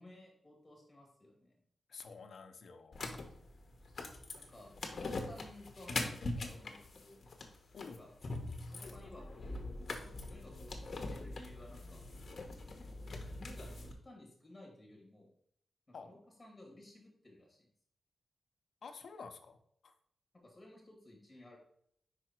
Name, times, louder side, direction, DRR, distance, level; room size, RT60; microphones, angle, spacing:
voice 1, 0.0-1.6 4.4-7.3 8.0-8.1 8.7-9.6 10.0-12.0 12.8-15.3 15.9-17.7 20.4-21.6, left 1 dB, 15° left, -1 dB, 2.2 m, -56 dB
voice 2, 1.9-3.1 7.7-8.1 15.9-16.1 18.8-19.9, left 5 dB, 65° left, 7 dB, 0.7 m, -50 dB
sound 1, 2.9-13.9, left 2 dB, 50° left, 1.0 m, -43 dB
5.1 x 4.8 x 4.5 m, 0.67 s
wide cardioid pair, 130°, 0 cm